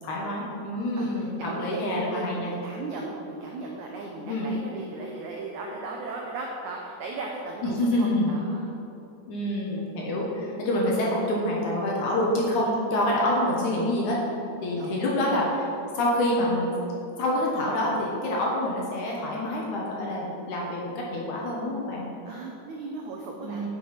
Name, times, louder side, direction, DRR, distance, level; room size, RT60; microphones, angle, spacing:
voice 1, 0.0-2.5 4.2-4.5 7.6-8.3 9.3-14.2 14.6-15.7 15.9-16.7 17.2-22.1 23.4-23.7, left 1 dB, 65° left, -3 dB, 2.3 m, -27 dB
voice 2, 1.0-8.7 14.8-14.9 22.2-23.7, right 3 dB, 85° right, 0 dB, 1.7 m, -37 dB
7.8 x 7.7 x 5.8 m, 2.8 s
omnidirectional pair, 4.5 m